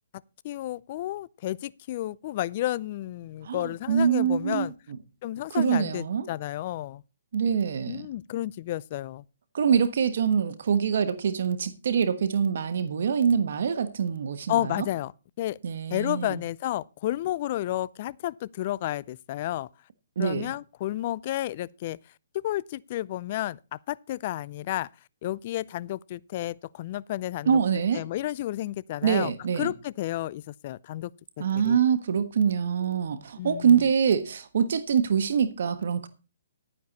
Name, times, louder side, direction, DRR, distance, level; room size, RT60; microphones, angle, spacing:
voice 1, 0.4-4.7 5.2-7.0 7.9-9.2 14.5-15.1 15.4-15.6 15.9-19.7 20.2-22.0 22.4-24.9 25.2-27.6 27.9-31.1 31.4-31.8 33.4-33.8, left 14 dB, 40° left, 0.5 m, -31 dB
voice 2, 3.4-4.7 5.5-6.3 7.3-8.1 9.5-14.8 15.6-16.4 20.2-20.5 27.5-28.0 29.0-29.7 31.4-36.1, right 7 dB, 60° right, 1.3 m, -25 dB
12.0 x 10.0 x 4.1 m
hypercardioid pair, 145°, 0 cm